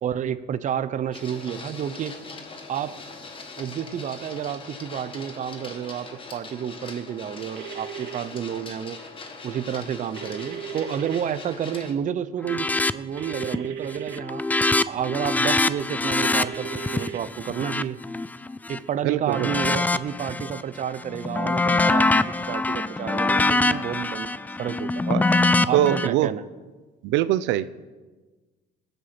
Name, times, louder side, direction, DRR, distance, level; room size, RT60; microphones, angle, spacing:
voice 1, 0.0-2.2 2.7-3.0 3.6-9.0 9.4-14.5 14.9-18.0 18.7-24.3 24.6-24.9 25.6-26.5, right 9 dB, 40° right, 14 dB, 0.7 m, -30 dB
Printer, 1.1-11.9, left 3 dB, 30° left, 1.8 m, -41 dB
sound 1, 7.5-8.2 10.2-11.2 13.2-14.2 16.2-17.2, right 9 dB, 65° right, 2.0 m, -36 dB
sound 2, 12.4-12.9 13.2-13.7 14.0-18.8 19.3-20.6 21.0-26.1, left 2 dB, 10° left, 0.4 m, -24 dB
voice 2, 19.0-19.5 25.1-25.2 25.7-26.3 27.0-27.6, right 13 dB, 85° right, 15 dB, 0.5 m, -22 dB
21.0 x 8.1 x 5.8 m, 1.3 s
cardioid pair, 125°, 19 cm